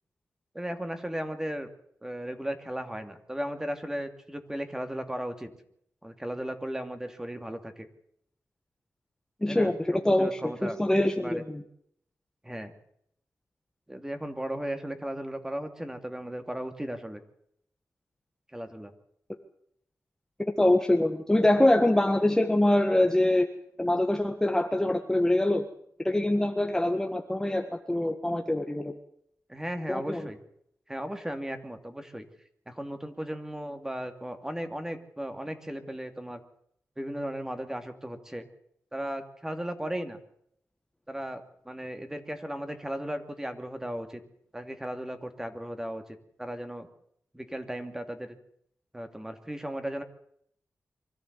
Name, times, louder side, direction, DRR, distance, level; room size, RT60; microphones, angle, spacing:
voice 1, 0.5-1.7 2.0-5.5 6.0-7.9 9.5-9.7 10.2-10.8 11.2-11.4 12.4-12.7 13.9-17.2 18.5-18.9 29.5-30.4 30.9-32.3 32.7-36.4 37.0-38.5 38.9-40.2 41.1-44.2 44.5-46.0 46.4-46.9 47.3-48.4 48.9-50.0, equal, 10° right, 7 dB, 2.6 m, -36 dB
voice 2, 9.4-9.8 10.0-11.6 20.6-23.5 23.8-25.6 26.0-28.9 29.9-30.2, left 1 dB, 10° left, 5 dB, 1.6 m, -24 dB
24.5 x 14.0 x 8.3 m, 0.71 s
wide cardioid pair, 95°, 5 cm